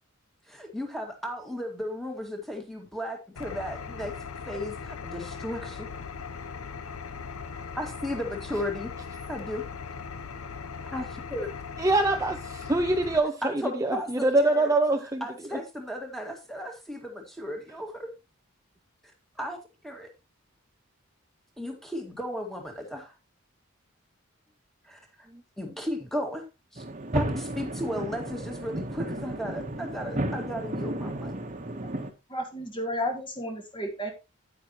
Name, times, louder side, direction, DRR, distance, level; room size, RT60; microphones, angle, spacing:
voice 1, 0.5-4.1 4.5-5.9 7.8-8.9 9.3-9.6 10.9-11.5 13.4-14.7 15.0-18.1 19.4-20.1 21.6-23.1 24.8-25.0 25.6-26.5 26.7-26.8 27.1-31.3, equal, ahead, 2.0 m, -35 dB
Engine, 3.4-13.2, left 5 dB, 80° left, 0.8 m, -39 dB
voice 2, 11.8-15.2 15.5-15.6 25.3-25.4, right 2 dB, 15° right, 0.6 m, -24 dB
sound 1, 26.8-32.1, right 1 dB, 35° right, 1.2 m, -33 dB
voice 3, 32.3-34.1, equal, 20° left, 2.0 m, -32 dB
9.7 x 9.2 x 3.0 m
head